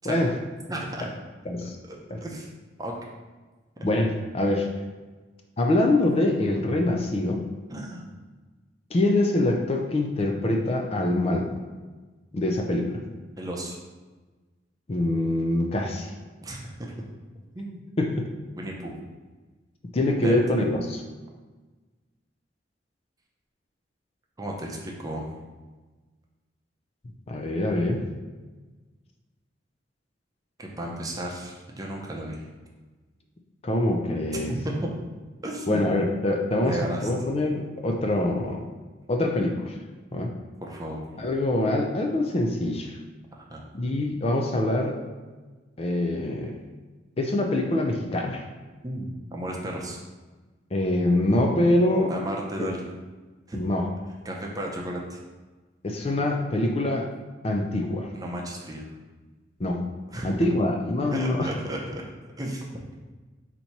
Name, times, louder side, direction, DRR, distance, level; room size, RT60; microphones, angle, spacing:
voice 1, 0.7-1.1 1.9-2.5 2.8-2.9 7.7-8.0 13.4-13.8 16.4-16.9 17.5-17.8 18.6-18.9 20.2-20.3 24.4-25.3 30.6-32.4 34.3-34.9 35.4-35.8 36.6-37.1 40.6-41.0 43.4-43.6 48.8-50.0 52.1-52.8 53.5-53.6 54.2-55.2 58.1-58.9 60.1-60.3 61.1-62.0 62.4-62.6, right 1 dB, 20° right, -1 dB, 0.6 m, -33 dB
voice 2, 1.5-1.8 2.1-2.2 3.8-4.7 5.6-7.5 8.9-11.5 12.3-13.0 14.9-16.1 18.0-18.3 19.9-21.0 27.3-28.1 33.6-34.5 35.7-38.7 39.1-39.8 40.1-40.3 41.2-42.9 43.7-45.0 45.8-46.6 47.2-48.4 50.7-52.1 52.6-52.7 53.6-53.8 55.8-57.1 57.4-58.1 59.6-59.8 60.2-61.5, left 1 dB, 35° left, 2 dB, 0.4 m, -24 dB
4.2 x 2.8 x 4.5 m, 1.3 s
head